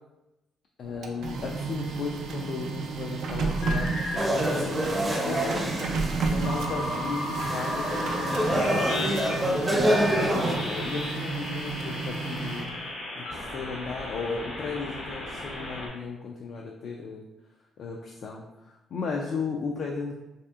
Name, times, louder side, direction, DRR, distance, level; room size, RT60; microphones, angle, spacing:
voice 1, 0.8-5.7 6.3-12.6 13.2-17.3 17.8-20.1, left 4 dB, 60° left, 0 dB, 0.3 m, -35 dB
Printer, 0.8-12.9, right 4 dB, 75° right, 0.4 m, -32 dB
sound 1, 3.5-4.4 5.3-15.9, left 1 dB, 85° left, 1.1 m, -35 dB
sound 2, 4.2-10.6, right 1 dB, 15° right, 0.6 m, -27 dB
3.3 x 2.7 x 2.3 m, 0.95 s
cardioid pair, 90°, 0 cm